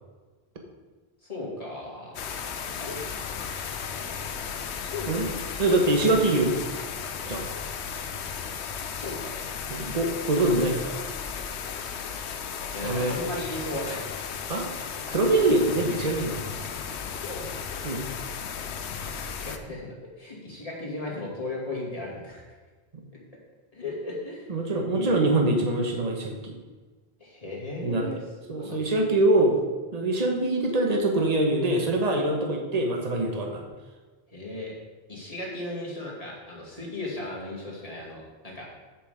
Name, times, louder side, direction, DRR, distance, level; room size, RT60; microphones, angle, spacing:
voice 1, 1.2-2.2 2.7-3.0 4.0-4.2 4.8-5.2 5.9-6.2 8.9-9.3 12.7-14.0 17.1-17.6 19.1-22.4 23.7-25.1 27.2-28.2 28.5-28.9 34.3-34.7 35.1-38.7, left 2 dB, 35° left, -4 dB, 2.4 m, -36 dB
sound 1, 2.1-19.6, left 7 dB, 85° left, 1.0 m, -35 dB
voice 2, 5.6-6.5 7.2-7.5 9.7-11.0 12.8-13.1 14.5-14.6 15.1-16.5 17.8-18.0 24.5-26.6 27.8-28.1 28.5-29.6 29.9-33.6, right 2 dB, 40° right, 2 dB, 1.3 m, -24 dB
7.7 x 6.9 x 5.0 m, 1.4 s
omnidirectional pair, 1.1 m